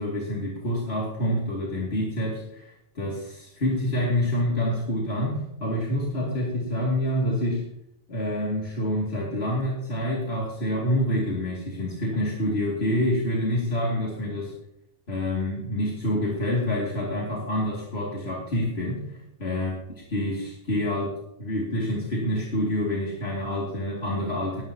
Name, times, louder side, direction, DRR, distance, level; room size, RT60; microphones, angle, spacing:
voice 1, 0.0-7.6 8.1-14.5 15.1-19.7 20.1-24.6, left 1 dB, 85° left, -4 dB, 2.8 m, -27 dB
18.5 x 11.5 x 2.9 m, 0.79 s
omnidirectional pair, 1.0 m